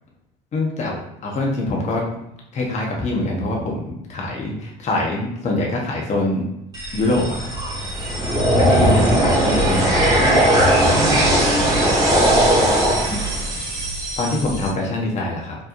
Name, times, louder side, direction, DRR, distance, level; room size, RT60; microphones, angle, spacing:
voice 1, 0.5-2.0 2.5-6.4 6.9-7.5 8.5-10.2 14.2-15.6, left 2 dB, 40° left, -1 dB, 1.0 m, -24 dB
sound 1, 6.7-14.7, right 1 dB, 20° right, 1.5 m, -18 dB
voice 2, 8.2-9.1 11.1-13.1, left 2 dB, 75° left, -2 dB, 1.1 m, -33 dB
4.3 x 3.0 x 2.6 m, 0.81 s
supercardioid pair, 85°, 18 cm